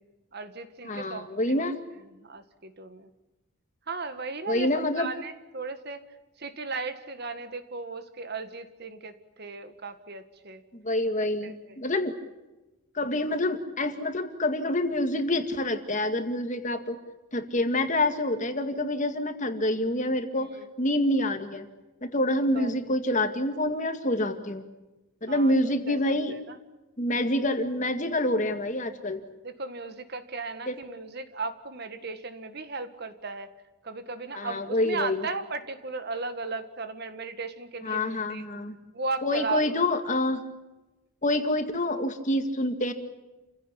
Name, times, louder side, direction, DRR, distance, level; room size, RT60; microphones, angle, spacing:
voice 1, 0.3-1.7 2.1-3.1 3.9-6.0 6.4-10.6 11.2-11.8 20.4-20.7 22.5-22.8 25.3-25.5 25.9-26.6 29.4-33.5 33.8-38.4 38.9-39.8, right 4 dB, 45° right, 10 dB, 1.7 m, -36 dB
voice 2, 0.8-1.8 4.5-5.1 10.7-12.2 12.9-17.0 17.3-21.7 22.0-24.6 25.2-26.3 27.0-29.2 30.7-30.8 34.3-35.3 37.8-38.8 39.2-40.4 41.2-42.9, left 1 dB, 35° left, 7 dB, 2.1 m, -27 dB
29.0 x 16.5 x 10.0 m, 1.1 s
head